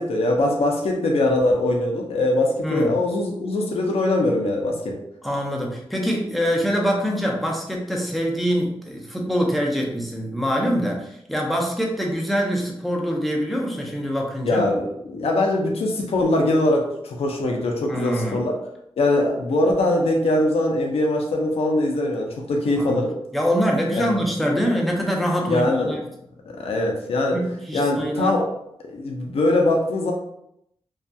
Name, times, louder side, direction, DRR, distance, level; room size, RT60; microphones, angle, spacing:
voice 1, 0.0-5.0 14.5-18.6 19.0-23.1 23.9-24.1 25.5-25.9 26.5-27.4 27.7-28.5 28.8-30.1, left 1 dB, 75° left, 1 dB, 0.6 m, -22 dB
voice 2, 2.6-2.9 5.2-14.6 17.9-18.4 22.8-23.0 23.3-26.0 27.3-28.4, equal, ahead, -1 dB, 0.6 m, -24 dB
2.7 x 2.3 x 2.2 m, 0.77 s
cardioid pair, 75°, 10 cm